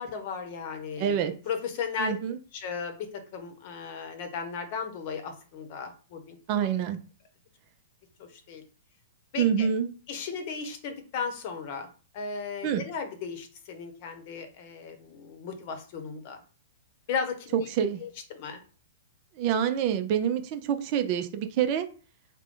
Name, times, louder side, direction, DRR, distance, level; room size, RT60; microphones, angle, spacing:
voice 1, 0.0-2.1 2.5-6.4 8.2-8.6 9.3-9.7 10.1-11.9 12.1-16.4 17.1-17.7 18.0-18.1 18.3-18.6, left 5 dB, 50° left, 7 dB, 0.8 m, -35 dB
voice 2, 1.0-1.3 2.0-2.4 6.5-7.0 9.4-9.9 12.6-12.8 17.7-18.0 19.4-21.9, right 8 dB, 40° right, 8 dB, 0.5 m, -26 dB
3.8 x 2.2 x 3.6 m, 0.37 s
hypercardioid pair, 140°, 0 cm